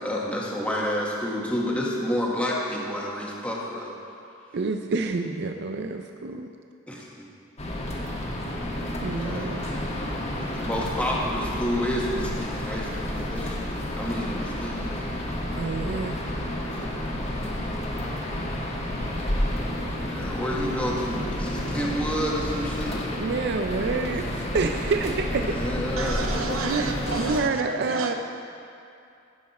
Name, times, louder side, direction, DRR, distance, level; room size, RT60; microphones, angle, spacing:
voice 1, 0.0-4.0 6.9-7.1 9.1-9.5 10.4-15.1 16.7-17.2 20.0-23.0 25.6-27.2, equal, 5° left, -4 dB, 1.4 m, -30 dB
voice 2, 4.5-6.5 6.9-7.0 9.0-9.8 15.4-16.2 23.2-25.6 26.0-26.1 26.6-26.9 27.1-28.1, right 4 dB, 55° right, 5 dB, 0.5 m, -28 dB
sound 1, 7.6-27.4, left 1 dB, 35° left, 1.3 m, -30 dB
voice 3, 26.0-28.1, right 3 dB, 90° right, 4 dB, 0.9 m, -32 dB
15.5 x 7.2 x 4.2 m, 2.5 s
head